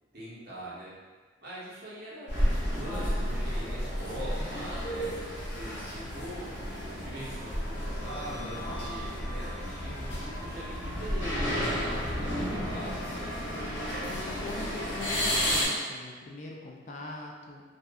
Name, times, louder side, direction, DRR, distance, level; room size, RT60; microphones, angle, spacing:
voice 1, 0.1-0.9 1.4-5.1 5.6-13.3, equal, 55° right, -8 dB, 0.8 m, -43 dB
sound 1, 2.3-15.7, equal, 75° left, 0.9 m, -32 dB
voice 2, 4.2-4.7 14.1-17.6, left 2 dB, 40° left, -1 dB, 0.3 m, -42 dB
2.6 x 2.3 x 2.3 m, 1.5 s
head